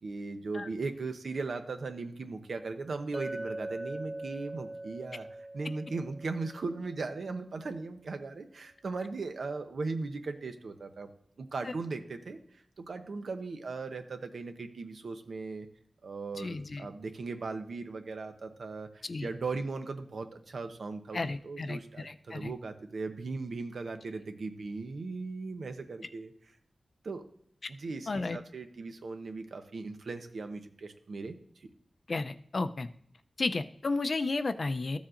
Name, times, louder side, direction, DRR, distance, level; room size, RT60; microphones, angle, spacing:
voice 1, 0.0-5.3 5.5-11.1 11.4-15.7 16.0-26.3 27.0-27.2 27.7-31.4, right 3 dB, 75° right, 7 dB, 0.8 m, -38 dB
Chink clink, 3.1-7.3, right 1 dB, 20° right, 0.3 m, -41 dB
voice 2, 16.4-16.8 19.1-19.3 21.1-22.5 27.6-27.7 28.1-28.4 32.1-32.9 33.4-35.0, left 3 dB, 50° left, 10 dB, 0.5 m, -33 dB
14.0 x 7.2 x 2.5 m, 0.67 s
wide cardioid pair, 110°, 0 cm